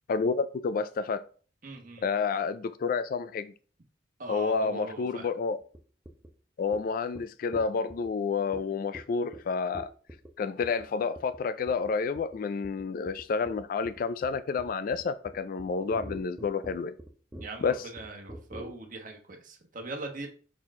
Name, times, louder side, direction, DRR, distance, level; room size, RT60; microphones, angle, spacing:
voice 1, 0.1-1.2 2.0-3.5 4.3-5.6 6.6-9.9 10.4-16.9 17.6-17.8, left 5 dB, 50° left, 0.3 m, -29 dB
voice 2, 1.6-2.1 4.2-5.3 17.4-20.3, right 2 dB, 50° right, 1.2 m, -40 dB
sound 1, 5.7-5.8 6.1-6.3 6.7-6.8 7.1-7.2 7.5-8.1 8.5-8.6 8.9-9.0 9.3-9.4 9.7-10.3 10.6-10.9 11.2-11.4 11.7-11.9 12.2-12.4 12.6-18.7, right 1 dB, 10° right, 0.7 m, -44 dB
6.1 x 4.4 x 3.6 m
head